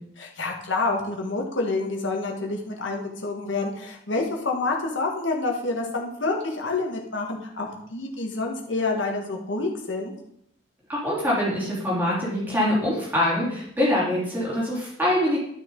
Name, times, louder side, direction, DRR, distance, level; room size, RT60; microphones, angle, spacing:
voice 1, 0.2-10.1, left 3 dB, 70° left, 1 dB, 1.7 m, -28 dB
voice 2, 10.9-15.4, left 1 dB, 10° right, -7 dB, 3.5 m, -24 dB
12.0 x 6.0 x 4.0 m, 0.70 s
head